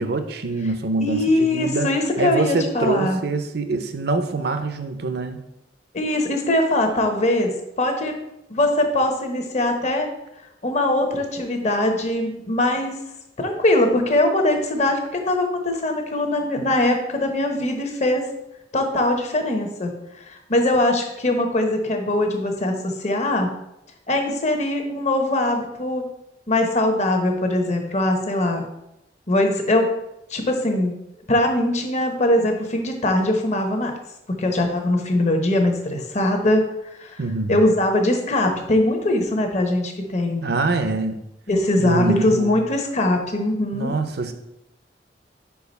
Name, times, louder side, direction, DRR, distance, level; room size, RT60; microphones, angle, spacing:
voice 1, 0.0-1.9 2.2-5.4 37.2-37.7 40.4-41.2 41.8-42.6 43.7-44.3, right 3 dB, 65° right, 9 dB, 0.6 m, -24 dB
voice 2, 1.0-3.2 5.9-7.5 7.8-8.1 8.5-10.1 10.6-12.9 13.4-18.2 18.7-23.5 24.1-26.0 26.5-28.6 29.3-29.9 30.3-30.9 31.3-33.9 34.3-37.2 37.5-40.4 41.5-43.9, left 1 dB, 40° left, 4 dB, 1.0 m, -21 dB
4.9 x 4.7 x 5.3 m, 0.85 s
head